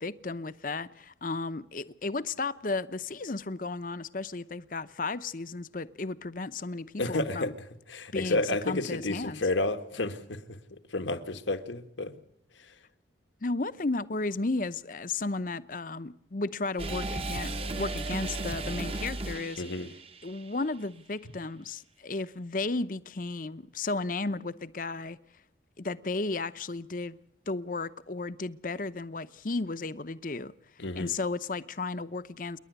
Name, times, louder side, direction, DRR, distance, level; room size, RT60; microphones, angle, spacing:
voice 1, 0.0-7.5 8.1-9.4 13.4-19.6 20.2-25.2 25.8-27.2 27.5-30.5 31.0-32.6, left 3 dB, 45° left, 0.8 m, -34 dB
voice 2, 7.0-7.5 7.9-12.2 19.6-19.9 30.8-31.1, left 2 dB, 85° left, 1.6 m, -31 dB
sound 1, 16.8-20.6, right 2 dB, 30° right, 1.0 m, -35 dB
28.5 x 11.0 x 8.1 m
head